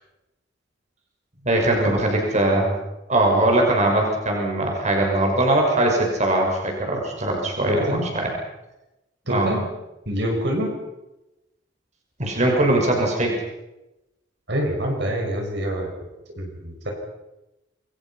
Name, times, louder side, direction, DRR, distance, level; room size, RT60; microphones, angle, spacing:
voice 1, 1.4-2.7 3.1-8.3 9.3-9.5 12.2-13.3, right 1 dB, 40° right, 0 dB, 6.2 m, -21 dB
voice 2, 7.7-8.1 9.3-9.6 10.1-10.7 14.5-15.9 16.4-16.9, equal, 60° right, 1 dB, 5.9 m, -25 dB
28.5 x 22.0 x 5.8 m, 0.95 s
head